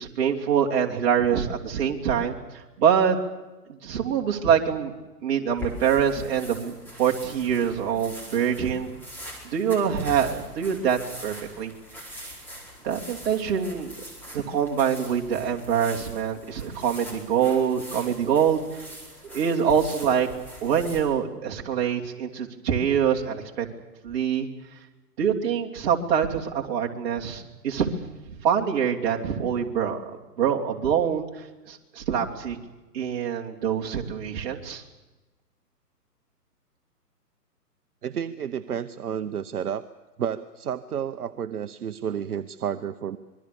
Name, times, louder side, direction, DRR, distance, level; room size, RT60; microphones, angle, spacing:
voice 1, 0.0-3.2 3.7-4.9 5.2-8.9 9.4-11.7 12.0-12.4 12.8-13.9 14.3-18.8 19.3-20.3 20.6-23.7 24.0-24.5 25.2-27.9 28.4-31.3 31.7-32.6 32.9-34.8, right 8 dB, 35° right, 0 dB, 3.1 m, -25 dB
sound 1, 5.5-21.0, left 1 dB, 5° left, 4.7 m, -42 dB
voice 2, 38.0-39.9 40.2-43.2, right 8 dB, 65° right, 10 dB, 1.0 m, -31 dB
26.0 x 22.0 x 6.9 m, 1.1 s
hypercardioid pair, 145°, 49 cm